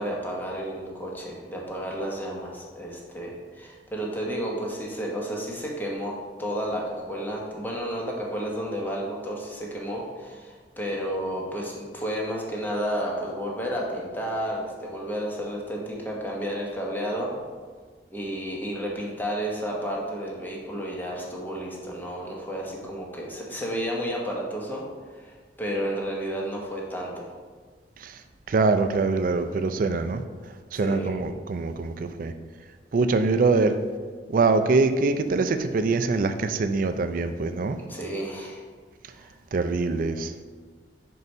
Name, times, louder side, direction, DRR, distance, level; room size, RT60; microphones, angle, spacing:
voice 1, 0.0-6.1 6.4-17.3 18.1-24.8 25.1-27.3 30.7-31.2 37.9-38.6 39.1-39.3, equal, 10° left, -2 dB, 1.0 m, -31 dB
voice 2, 28.5-30.2 30.7-32.3 32.9-33.8 34.3-37.8 39.5-40.3, right 3 dB, 50° right, 9 dB, 0.4 m, -24 dB
4.6 x 4.1 x 5.4 m, 1.5 s
head